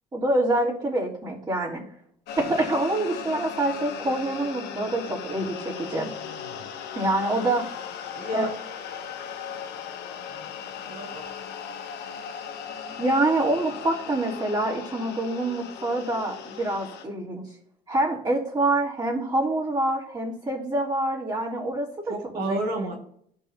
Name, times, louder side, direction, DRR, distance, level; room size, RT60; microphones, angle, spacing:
voice 1, 0.1-1.8 2.4-6.1 7.0-7.7 8.3-8.4 13.0-17.4 17.9-22.6, right 2 dB, 25° right, -9 dB, 3.7 m, -26 dB
sound 1, 2.3-17.0, left 7 dB, 75° left, 1.1 m, -37 dB
voice 2, 4.9-5.4 5.9-6.7 7.4-7.7 8.1-8.6 10.3-10.5 10.8-11.2 22.1-23.0, right 2 dB, 65° right, 1 dB, 2.1 m, -33 dB
12.5 x 5.6 x 2.9 m, 0.67 s
cardioid pair, 110°, 17 cm